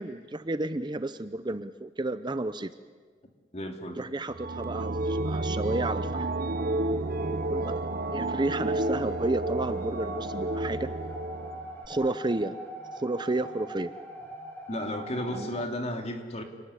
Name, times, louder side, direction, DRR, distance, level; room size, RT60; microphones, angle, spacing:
voice 1, 0.0-2.7 3.9-6.3 7.3-7.8 8.1-10.9 11.9-12.6 12.9-13.9 15.3-15.5, right 2 dB, 25° right, 12 dB, 0.7 m, -31 dB
voice 2, 3.5-4.1 14.7-16.4, left 1 dB, 40° left, 3 dB, 3.1 m, -33 dB
sound 1, 4.3-11.9, right 2 dB, 55° right, 1.0 m, -31 dB
sound 2, 6.1-15.6, right 1 dB, 10° left, 3.8 m, -42 dB
28.5 x 19.5 x 9.9 m, 1.5 s
head